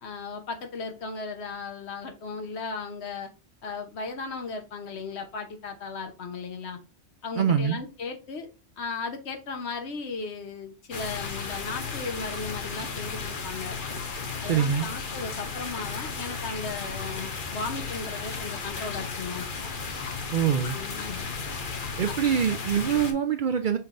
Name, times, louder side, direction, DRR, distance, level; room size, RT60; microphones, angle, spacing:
voice 1, 0.0-3.3 3.6-6.8 7.2-8.5 8.8-13.8 14.4-19.5 20.7-21.3 22.1-22.2, left 4 dB, 70° left, 5 dB, 1.2 m, -36 dB
voice 2, 7.4-7.8 14.5-14.9 20.3-20.8 22.0-23.8, right 8 dB, 60° right, 8 dB, 0.6 m, -24 dB
sound 1, 10.9-23.1, left 4 dB, 50° left, 0.9 m, -34 dB
5.6 x 3.3 x 2.5 m, 0.33 s
omnidirectional pair, 1.1 m